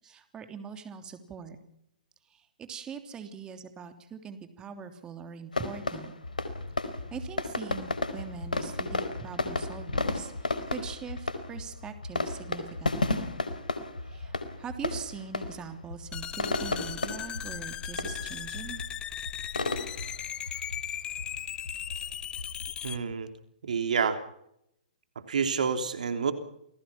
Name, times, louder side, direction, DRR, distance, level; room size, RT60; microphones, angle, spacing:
voice 1, 0.0-1.6 2.3-6.1 7.1-13.3 14.0-18.8, right 6 dB, 20° right, 7 dB, 3.2 m, -42 dB
sound 1, 5.5-23.1, left 3 dB, 80° left, 4.4 m, -34 dB
sound 2, 16.1-23.0, left 10 dB, 20° left, 1.3 m, -38 dB
voice 2, 22.8-23.3 23.6-24.2 25.3-26.3, right 6 dB, 65° right, 8 dB, 3.3 m, -28 dB
28.5 x 20.0 x 6.0 m, 0.75 s
figure-of-eight pair, 120°, 4 cm